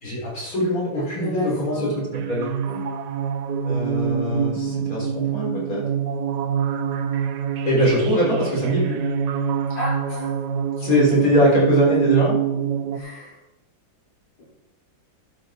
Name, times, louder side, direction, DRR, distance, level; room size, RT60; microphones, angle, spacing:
voice 1, 0.0-1.9 2.2-2.5 3.6-5.8 7.6-9.0 10.8-12.4, equal, 50° left, -5 dB, 4.5 m, -22 dB
voice 2, 0.9-2.3 2.6-2.8 9.7-10.3 10.8-10.9 12.9-13.4 14.4-14.5, left 1 dB, 75° left, -8 dB, 5.0 m, -33 dB
sound 1, 2.1-13.0, right 7 dB, 75° right, 1.3 m, -25 dB
11.0 x 7.7 x 4.4 m, 0.95 s
omnidirectional pair, 2.0 m